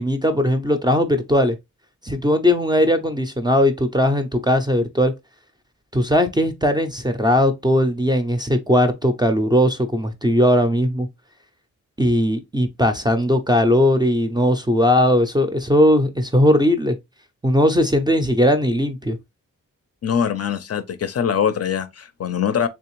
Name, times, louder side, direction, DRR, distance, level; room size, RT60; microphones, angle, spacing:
voice 1, 0.0-1.6 2.0-5.1 5.9-11.1 12.0-17.0 17.4-19.2, left 1 dB, 15° right, 0.4 m, -18 dB
voice 2, 20.0-22.7, left 8 dB, 45° left, 0.5 m, -23 dB
3.4 x 3.2 x 3.0 m
wide cardioid pair, 115°, 33 cm